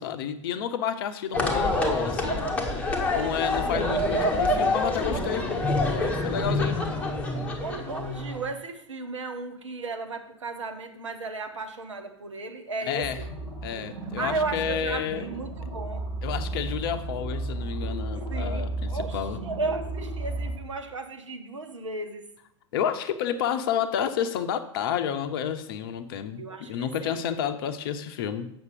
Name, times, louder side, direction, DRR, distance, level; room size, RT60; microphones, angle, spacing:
voice 1, 0.0-2.4 3.1-5.5 5.9-6.8 12.9-13.2 13.6-15.4 16.2-19.4 22.7-28.5, left 8 dB, 45° left, 10 dB, 0.7 m, -30 dB
sound 1, 1.3-8.5, left 2 dB, 10° left, 1.2 m, -26 dB
voice 2, 7.6-13.3 14.2-16.0 18.3-22.3 26.4-27.2, right 3 dB, 70° right, 6 dB, 1.0 m, -35 dB
sound 2, 13.0-20.6, right 2 dB, 20° right, 2.0 m, -33 dB
8.0 x 6.0 x 5.3 m, 0.76 s
figure-of-eight pair, 95°, 16 cm